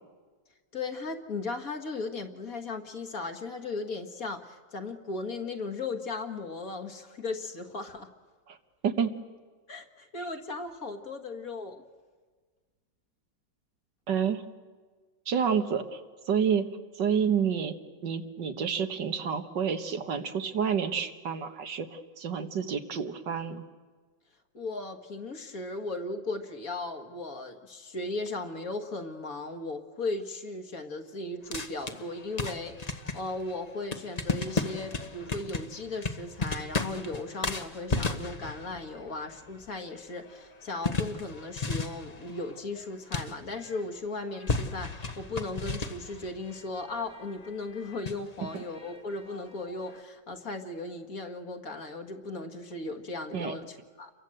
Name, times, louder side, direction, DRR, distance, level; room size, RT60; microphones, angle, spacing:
voice 1, 0.7-8.1 9.7-11.8 24.5-54.1, left 3 dB, 50° left, 6 dB, 2.2 m, -37 dB
voice 2, 14.1-14.4 15.3-16.0 16.3-16.7 17.0-17.7 18.0-23.6 48.5-48.6 53.3-53.5, right 7 dB, 75° right, 7 dB, 2.1 m, -29 dB
sound 1, 31.5-44.0 44.3-50.0, left 3 dB, 25° left, 1.1 m, -35 dB
29.5 x 23.0 x 7.9 m, 1.4 s
omnidirectional pair, 1.9 m